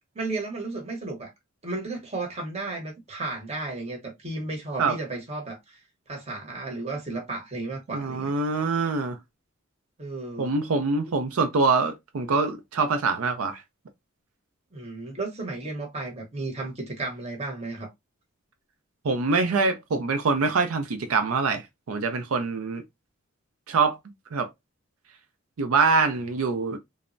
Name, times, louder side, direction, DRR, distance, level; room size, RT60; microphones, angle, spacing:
voice 1, 0.1-1.3 1.6-5.8 6.1-8.3 10.0-10.5 14.7-17.9, right 2 dB, 30° right, 0.8 m, -33 dB
voice 2, 7.9-9.2 10.4-13.6 19.0-21.6 21.9-22.8 23.7-24.0 24.3-24.5 25.6-26.8, right 4 dB, 75° right, 0.5 m, -24 dB
3.2 x 2.0 x 2.5 m
head